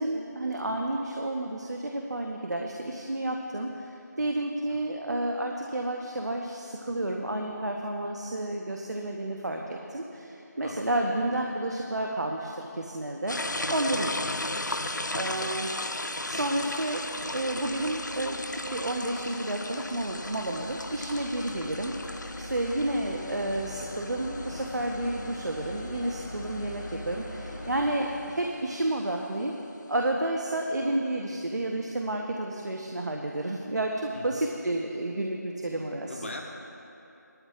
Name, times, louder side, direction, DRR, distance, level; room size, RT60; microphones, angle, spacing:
voice 1, 0.0-3.9 4.2-13.4 13.7-14.4 15.1-15.7 16.2-17.0 17.3-21.9 22.4-29.6 29.9-36.1, right 1 dB, 70° right, 1 dB, 1.0 m, -31 dB
sound 1, 13.3-27.6, left 2 dB, 90° left, 0.7 m, -36 dB
voice 2, 16.3-16.7 21.5-21.7 24.5-25.0 34.1-34.3 36.0-36.4, left 2 dB, 45° left, 1 dB, 1.2 m, -44 dB
sound 2, 16.4-29.1, left 1 dB, 5° left, 0.5 m, -42 dB
18.5 x 13.0 x 2.4 m, 2.8 s
figure-of-eight pair, 170°, 10 cm